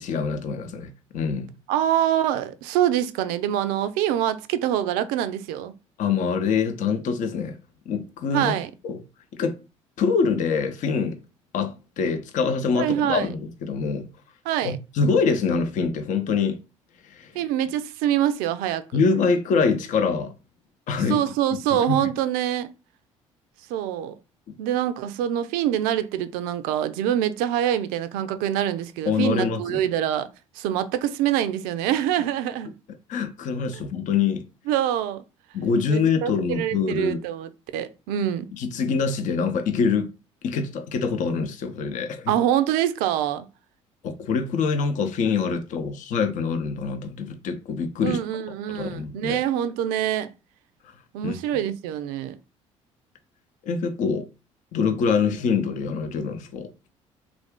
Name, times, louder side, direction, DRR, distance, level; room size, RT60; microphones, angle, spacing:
voice 1, 0.0-1.5 6.0-7.6 7.9-8.6 8.8-9.0 9.4-9.6 10.0-11.2 11.5-14.1 14.6-16.6 17.0-17.3 18.9-20.3 20.9-21.2 21.7-22.1 29.1-29.8 33.1-34.5 35.5-37.2 38.6-40.1 40.4-42.3 44.0-48.2 48.7-49.4 51.2-51.3 53.6-54.3 54.7-56.7, left 5 dB, 50° left, 0.7 m, -25 dB
voice 2, 1.7-5.7 8.3-8.7 12.7-13.3 14.5-14.8 17.3-19.0 21.1-22.7 23.7-24.1 24.6-30.3 30.5-32.7 34.7-35.2 35.9-38.5 42.3-43.5 48.0-50.3 51.1-52.4, right 11 dB, 65° right, 0.4 m, -25 dB
3.4 x 2.5 x 3.6 m
figure-of-eight pair, 55°, 16 cm